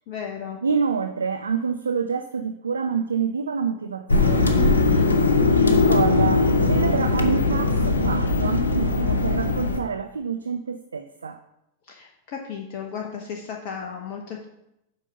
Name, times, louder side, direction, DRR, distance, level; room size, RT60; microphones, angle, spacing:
voice 1, 0.1-0.6 4.6-5.1 11.9-14.4, left 7 dB, 45° left, 1 dB, 0.9 m, -34 dB
voice 2, 0.6-4.7 5.6-11.4, right 6 dB, 75° right, 9 dB, 0.4 m, -27 dB
sound 1, 4.1-9.8, left 3 dB, 75° left, 0.8 m, -20 dB
7.7 x 5.3 x 5.4 m, 0.86 s
figure-of-eight pair, 90°, 0 cm